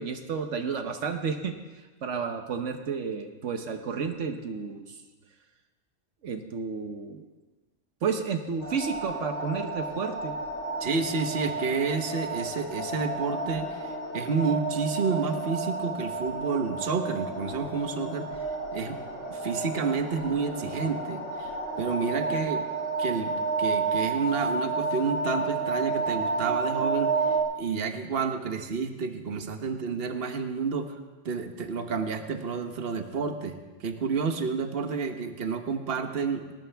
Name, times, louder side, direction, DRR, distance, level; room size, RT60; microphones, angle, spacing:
voice 1, 0.0-1.6 2.0-5.0 6.2-7.2 8.0-10.3, right 5 dB, 75° right, 6 dB, 1.3 m, -31 dB
sound 1, 8.6-27.4, right 3 dB, 70° left, 2.7 m, -31 dB
voice 2, 10.8-18.3 18.7-19.0 19.3-21.5 21.8-22.7 23.0-27.2 27.6-30.9 31.2-36.4, right 5 dB, 55° right, 6 dB, 1.3 m, -30 dB
18.5 x 18.5 x 3.5 m, 1.3 s
omnidirectional pair, 1.3 m